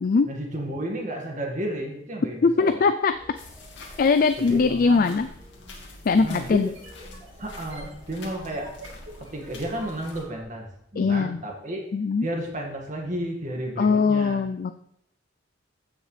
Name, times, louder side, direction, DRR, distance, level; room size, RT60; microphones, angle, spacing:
voice 1, 0.2-2.8 4.4-5.1 6.1-6.7 7.4-8.7 9.2-11.8 12.2-14.4, right 1 dB, 40° right, 0 dB, 2.0 m, -32 dB
voice 2, 2.4-3.1 4.0-5.3 6.0-6.7 11.0-11.4 11.9-12.3 13.8-14.7, left 4 dB, 50° left, 9 dB, 0.4 m, -21 dB
sound 1, 3.1-10.4, equal, 5° right, 2.0 m, -49 dB
sound 2, 3.4-10.2, left 2 dB, 75° left, 2.3 m, -46 dB
sound 3, 6.5-10.5, right 1 dB, 85° right, 2.5 m, -48 dB
15.0 x 6.4 x 3.4 m, 0.76 s
head